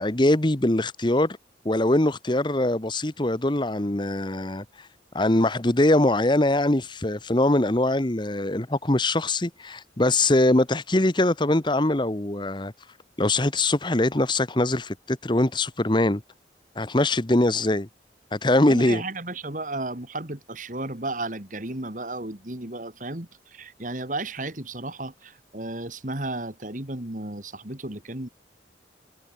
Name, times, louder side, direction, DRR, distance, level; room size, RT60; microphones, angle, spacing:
voice 1, 0.0-1.4 1.6-4.9 5.1-12.7 13.2-16.2 16.8-17.9 18.3-19.0, left 1 dB, 25° left, 1.1 m, -22 dB
voice 2, 18.6-28.3, right 2 dB, 45° right, 2.7 m, -34 dB
head